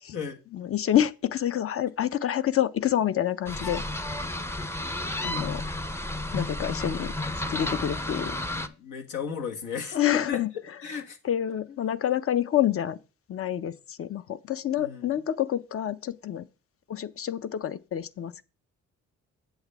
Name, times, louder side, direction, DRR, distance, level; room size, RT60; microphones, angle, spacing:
voice 1, 0.5-3.8 5.2-5.6 6.3-8.4 9.9-10.5 11.2-13.0 13.3-16.5 16.9-18.4, left 11 dB, 50° left, 0.6 m, -27 dB
sound 1, 3.5-8.7, left 1 dB, 10° left, 0.6 m, -32 dB
voice 2, 8.2-11.2 14.8-15.2, left 7 dB, 85° left, 1.6 m, -36 dB
8.0 x 7.8 x 3.5 m
cardioid pair, 90°, 30 cm